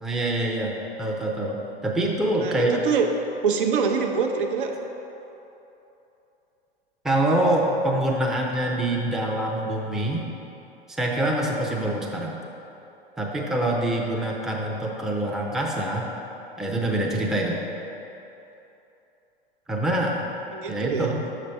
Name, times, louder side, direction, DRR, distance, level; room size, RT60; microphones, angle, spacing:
voice 1, 0.0-0.7 1.0-1.6 1.8-2.8 7.0-10.3 10.9-12.4 13.2-16.1 16.6-17.6 19.7-20.3 20.7-21.2, right 1 dB, ahead, -2 dB, 0.5 m, -25 dB
voice 2, 2.4-3.1 3.4-4.7 20.5-21.2, right 6 dB, 60° right, 4 dB, 0.7 m, -24 dB
6.6 x 5.0 x 4.4 m, 3.0 s
figure-of-eight pair, 95°, 29 cm